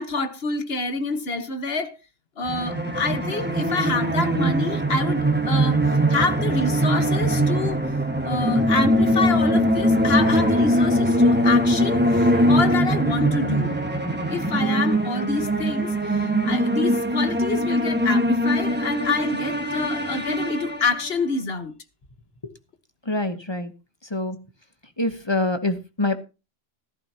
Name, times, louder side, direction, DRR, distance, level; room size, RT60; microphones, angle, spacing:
voice 1, 0.0-2.0 2.4-5.8 6.1-7.8 8.2-13.8 14.3-21.7, left 4 dB, 65° left, 1.6 m, -27 dB
sound 1, 2.4-21.2, equal, 10° right, 1.5 m, -22 dB
voice 2, 23.1-23.7 24.1-24.4 25.0-26.2, left 2 dB, 25° left, 1.1 m, -25 dB
15.0 x 13.5 x 2.9 m
omnidirectional pair, 1.1 m